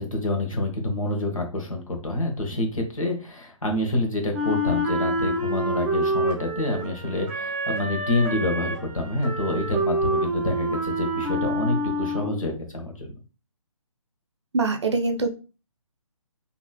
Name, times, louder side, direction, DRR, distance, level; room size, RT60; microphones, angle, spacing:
voice 1, 0.0-13.1, left 2 dB, 70° left, 2 dB, 1.2 m, -27 dB
Wind instrument woodwind instrument, 4.3-12.5, right 1 dB, 15° right, 0.7 m, -27 dB
voice 2, 14.5-15.3, right 3 dB, 55° right, 6 dB, 0.5 m, -23 dB
3.1 x 2.8 x 2.2 m, 0.33 s
figure-of-eight pair, 140°, 18 cm